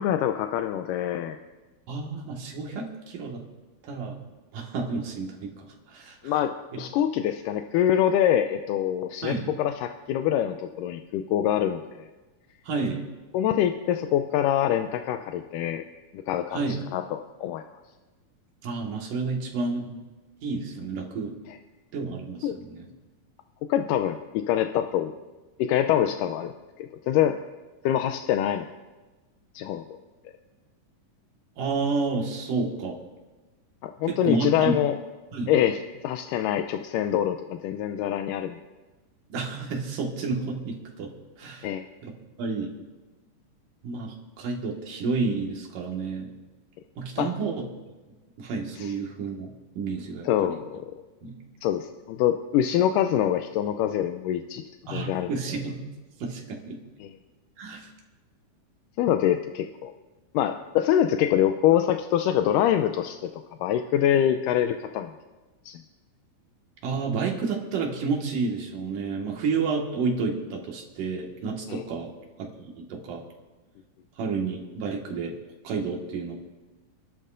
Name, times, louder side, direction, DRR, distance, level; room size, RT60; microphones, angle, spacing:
voice 1, 0.0-1.4 6.2-12.1 13.3-15.8 16.3-17.6 21.5-21.6 22.4-22.6 23.7-25.1 25.6-26.5 26.8-27.4 27.8-28.7 29.5-30.0 33.8-34.9 35.5-38.6 41.6-41.8 47.2-47.3 48.7-48.9 50.2-50.8 51.6-54.6 54.9-55.3 57.0-57.1 59.0-59.9 60.3-63.3 63.6-65.1 65.7-65.8 71.7-71.8, left 10 dB, 85° left, 7 dB, 2.2 m, -25 dB
voice 2, 1.9-3.4 3.9-4.2 4.5-6.3 9.2-9.5 12.7-13.0 16.5-16.8 18.6-20.0 20.4-21.3 21.9-22.9 31.6-33.0 34.1-34.7 35.3-35.5 39.3-41.1 41.4-41.7 42.0-42.1 42.4-42.7 43.8-46.3 47.0-47.6 48.4-49.5 49.8-50.6 51.2-51.3 54.9-55.8 56.2-56.8 57.6-57.9 66.8-72.1 72.4-72.5 72.8-73.2 74.2-75.3 75.6-76.4, right 4 dB, 75° right, 0 dB, 3.3 m, -30 dB
27.5 x 12.0 x 2.5 m, 1.2 s
omnidirectional pair, 3.8 m